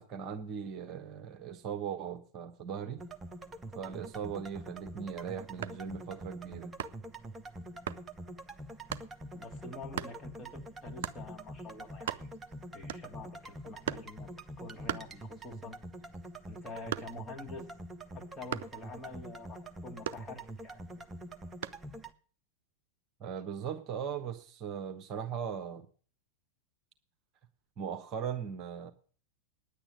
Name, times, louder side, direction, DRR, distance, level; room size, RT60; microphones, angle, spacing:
voice 1, 0.0-3.0 3.7-6.7 23.2-25.9 27.8-28.9, right 7 dB, 35° right, 7 dB, 1.1 m, -39 dB
sound 1, 3.0-22.1, right 1 dB, 15° right, 0.9 m, -46 dB
sound 2, 5.6-5.9 6.8-7.1 7.9-8.1 8.9-9.1 9.9-10.2 11.0-11.3 11.7-11.8 11.9-12.5 12.9-13.3 13.8-14.2 14.9-15.6 16.0-17.4 18.5-18.8 20.0-20.7 21.6-21.9, right 9 dB, 55° right, 0.6 m, -38 dB
voice 2, 9.3-12.3 12.7-14.3 14.6-15.8 16.5-17.7 18.1-20.8, left 3 dB, 15° left, 1 dB, 2.1 m, -47 dB
10.0 x 8.7 x 8.5 m, 0.43 s
figure-of-eight pair, 90°, 0 cm